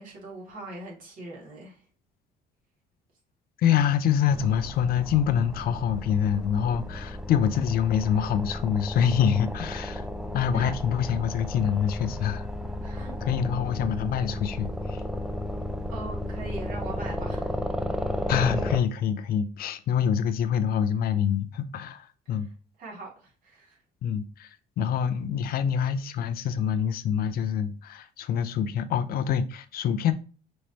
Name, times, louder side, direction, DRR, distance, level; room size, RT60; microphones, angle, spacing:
voice 1, 0.0-1.8 10.5-10.8 12.8-13.2 15.9-17.5 18.0-18.1 22.3-22.4 22.8-23.8, right 2 dB, 55° right, 2.5 m, -40 dB
voice 2, 3.6-10.1 10.3-12.5 13.2-15.0 18.3-22.5 24.0-30.1, left 8 dB, 65° left, 0.6 m, -26 dB
sound 1, 4.3-18.8, left 1 dB, 5° right, 0.5 m, -33 dB
5.3 x 3.2 x 2.9 m
cardioid pair, 110°, 17 cm